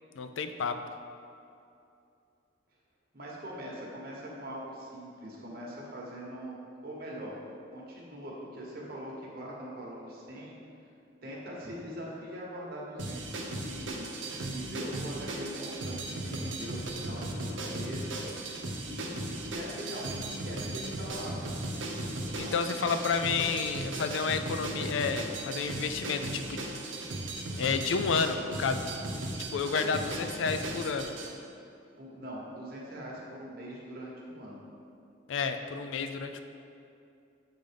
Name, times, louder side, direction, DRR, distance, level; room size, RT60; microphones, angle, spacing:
voice 1, 0.2-0.8 22.4-26.8 27.6-28.9 29.5-31.2 35.3-36.4, left 5 dB, 75° left, 8 dB, 0.4 m, -31 dB
voice 2, 3.1-6.6 6.8-7.3 7.7-10.5 11.2-14.0 14.5-18.2 18.8-21.4 22.4-22.8 32.0-34.6, equal, 50° right, -4 dB, 1.3 m, -42 dB
sound 1, 13.0-31.3, right 2 dB, 80° right, 0.8 m, -37 dB
7.3 x 3.8 x 5.1 m, 2.6 s
head